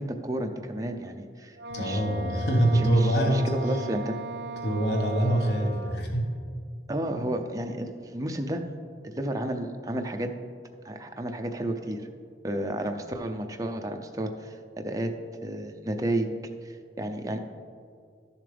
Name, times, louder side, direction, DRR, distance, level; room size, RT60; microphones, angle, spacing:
voice 1, 0.0-2.0 2.7-4.1 6.9-8.6 9.0-10.3 10.8-12.1 12.4-15.1 15.4-16.3 16.6-17.4, right 1 dB, 20° right, 4 dB, 0.5 m, -32 dB
Wind instrument woodwind instrument, 1.6-6.1, right 2 dB, 75° right, 0.5 m, -38 dB
voice 2, 1.7-3.8 4.6-6.3, right 1 dB, 70° left, 1 dB, 1.3 m, -24 dB
12.5 x 7.2 x 3.4 m, 2.2 s
head